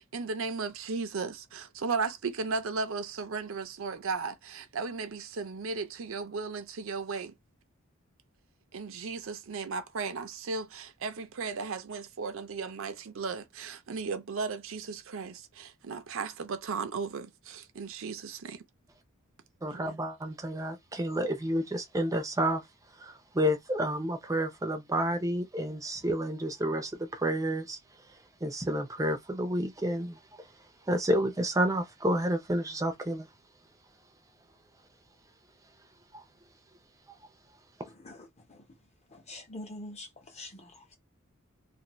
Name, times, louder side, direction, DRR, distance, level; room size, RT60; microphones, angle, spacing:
voice 1, 0.0-7.3 8.7-18.6 19.7-20.0, right 4 dB, 65° right, 0.5 m, -35 dB
voice 2, 19.6-22.6 23.0-27.8 28.4-30.4 30.9-33.3 36.1-36.2, equal, 15° right, 0.5 m, -30 dB
voice 3, 38.0-38.7 39.1-41.0, left 1 dB, 30° left, 0.9 m, -45 dB
2.6 x 2.5 x 3.0 m
head